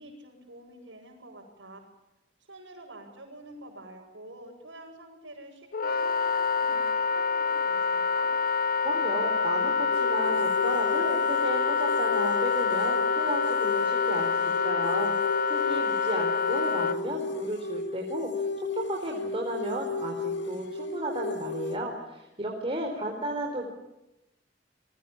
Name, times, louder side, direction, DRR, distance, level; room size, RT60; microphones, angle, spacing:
voice 1, 0.0-1.8 2.4-8.3 22.5-23.2, right 1 dB, 75° right, -5 dB, 6.6 m, -48 dB
Wind instrument woodwind instrument, 5.7-17.0, left 5 dB, 50° left, 0.9 m, -26 dB
voice 2, 8.8-18.5 18.7-23.7, right 1 dB, 30° right, 0 dB, 4.2 m, -34 dB
sound 1, 9.9-21.8, left 4 dB, 65° left, 2.9 m, -34 dB
29.5 x 22.0 x 7.3 m, 0.94 s
head